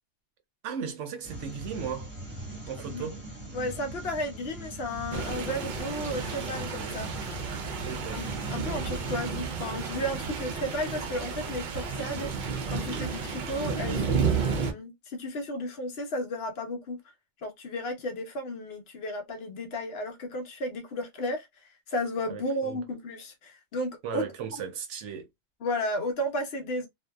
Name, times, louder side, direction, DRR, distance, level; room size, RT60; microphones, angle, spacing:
voice 1, 0.6-2.1 2.7-3.2 7.8-8.2 22.3-22.8 24.0-25.3, right 7 dB, 80° right, 0.9 m, -36 dB
sound 1, 1.2-9.2, right 1 dB, 10° right, 1.1 m, -41 dB
voice 2, 3.5-7.5 8.1-12.3 12.7-17.0 17.4-24.2 25.6-26.9, left 1 dB, 60° left, 0.9 m, -33 dB
sound 2, 5.1-14.7, right 5 dB, 60° right, 0.5 m, -32 dB
2.6 x 2.2 x 2.2 m
omnidirectional pair, 1.2 m